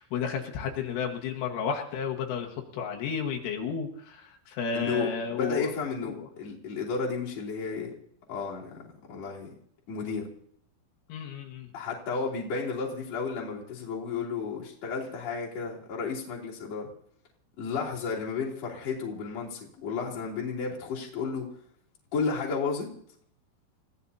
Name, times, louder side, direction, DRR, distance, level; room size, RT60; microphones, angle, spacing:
voice 1, 0.0-5.7 6.0-6.3 11.1-11.7, left 6 dB, 80° left, 1 dB, 4.1 m, -32 dB
voice 2, 4.7-7.9 8.3-9.5 9.9-10.3 11.7-16.9 17.6-21.5 22.1-22.9, left 5 dB, 40° left, -4 dB, 3.5 m, -33 dB
29.5 x 16.0 x 2.8 m, 0.67 s
omnidirectional pair, 5.7 m